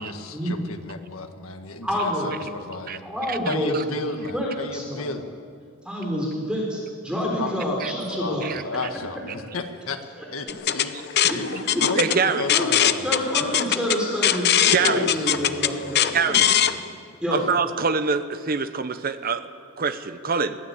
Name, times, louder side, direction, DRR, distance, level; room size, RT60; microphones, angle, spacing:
voice 1, 0.0-3.0 3.4-5.2 7.4-7.5 8.2-10.0 10.3-13.2 14.7-16.5, left 3 dB, 85° left, 6 dB, 1.6 m, -33 dB
voice 2, 1.8-2.3 3.0-3.8 4.3-5.1 5.8-8.5 11.3-11.4 11.7-11.8 12.5-12.7 13.0-16.1 17.2-17.4, equal, 5° right, -3 dB, 3.9 m, -27 dB
voice 3, 3.3-3.8 7.8-7.9 8.4-8.6 12.0-12.5 14.7-15.1 16.1-16.5 17.3-19.5 19.8-20.6, right 5 dB, 45° right, 10 dB, 0.9 m, -25 dB
sound 1, 10.5-16.7, left 10 dB, 50° left, 0.7 m, -21 dB
21.5 x 15.5 x 8.4 m, 2.1 s
head